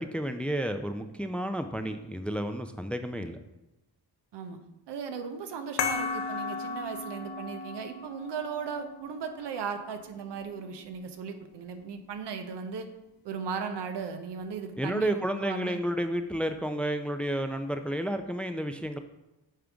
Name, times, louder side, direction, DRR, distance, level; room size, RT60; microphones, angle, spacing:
voice 1, 0.0-3.4 14.8-19.0, equal, 5° left, 8 dB, 0.5 m, -31 dB
voice 2, 4.9-12.9 13.2-15.8, right 6 dB, 70° right, 7 dB, 0.9 m, -37 dB
sound 1, 5.8-10.9, left 5 dB, 80° left, 0.9 m, -36 dB
8.7 x 3.7 x 3.5 m, 0.98 s
supercardioid pair, 55°, 43 cm